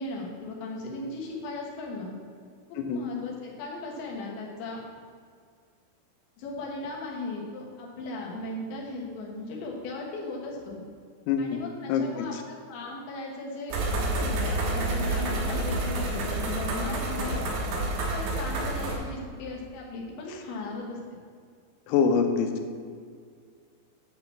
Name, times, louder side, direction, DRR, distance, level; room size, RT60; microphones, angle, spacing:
voice 1, 0.0-2.1 2.7-4.8 6.4-10.8 11.4-17.5 18.0-21.0, left 2 dB, 65° left, -2 dB, 2.8 m, -37 dB
voice 2, 11.3-11.6 11.9-12.4 20.3-20.4 21.9-22.5, left 6 dB, 85° left, 5 dB, 3.1 m, -25 dB
sound 1, 13.7-19.0, right 2 dB, 85° right, 3.8 m, -29 dB
9.3 x 3.9 x 7.1 m, 2.1 s
omnidirectional pair, 5.4 m